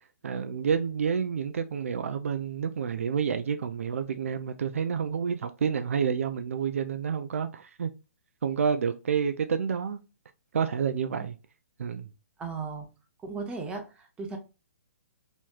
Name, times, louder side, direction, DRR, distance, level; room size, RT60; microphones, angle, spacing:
voice 1, 0.2-7.9 8.4-10.0 10.5-11.3 11.8-12.1, right 7 dB, 65° right, 0.4 m, -29 dB
voice 2, 12.4-12.9 13.2-14.4, right 4 dB, 15° right, 0.8 m, -36 dB
3.1 x 3.0 x 2.3 m
figure-of-eight pair, 125°, 8 cm